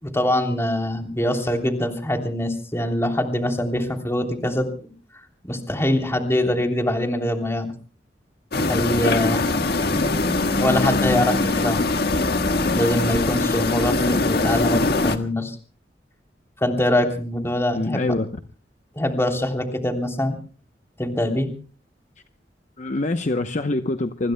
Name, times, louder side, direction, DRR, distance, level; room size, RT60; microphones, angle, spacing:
voice 1, 0.0-4.7 5.4-7.7 8.7-9.4 10.6-11.8 12.7-15.6 16.6-18.1 18.9-20.3 21.0-21.5, left 1 dB, 15° left, 3 dB, 3.2 m, -23 dB
sound 1, 8.5-15.2, left 2 dB, 65° left, 1.6 m, -22 dB
voice 2, 17.7-18.3 22.8-24.3, left 2 dB, 45° left, 7 dB, 0.8 m, -24 dB
25.0 x 25.0 x 2.2 m, 0.39 s
head